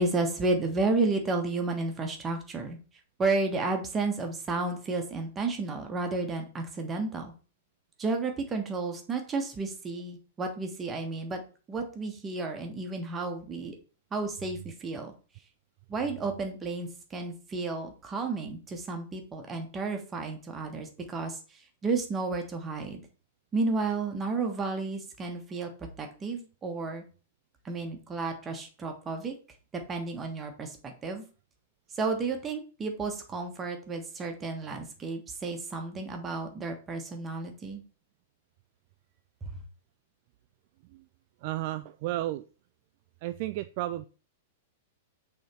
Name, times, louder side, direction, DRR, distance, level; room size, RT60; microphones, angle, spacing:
voice 1, 0.0-2.8 3.2-7.3 8.0-11.4 11.7-13.8 14.1-15.1 15.9-21.4 21.8-23.0 23.5-27.0 27.6-29.3 29.9-31.2 31.9-37.8 39.4-39.6, right 3 dB, 20° right, 3 dB, 1.3 m, -32 dB
voice 2, 41.4-42.4 43.2-44.1, right 15 dB, 45° right, 11 dB, 0.3 m, -33 dB
6.2 x 3.6 x 4.4 m, 0.36 s
figure-of-eight pair, 100°, 0 cm